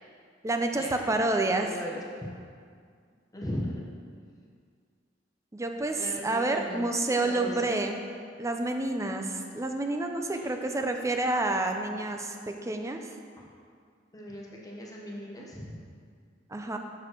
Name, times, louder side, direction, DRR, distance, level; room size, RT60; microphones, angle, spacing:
voice 1, 0.4-1.7 5.5-8.0 8.4-13.1 16.5-16.8, right 2 dB, 15° right, 4 dB, 0.5 m, -29 dB
voice 2, 1.4-2.3 3.3-3.8 6.0-7.7 10.4-10.5 13.4-13.5 14.1-15.8, equal, 20° left, -3 dB, 1.1 m, -38 dB
6.2 x 5.2 x 5.9 m, 2.1 s
head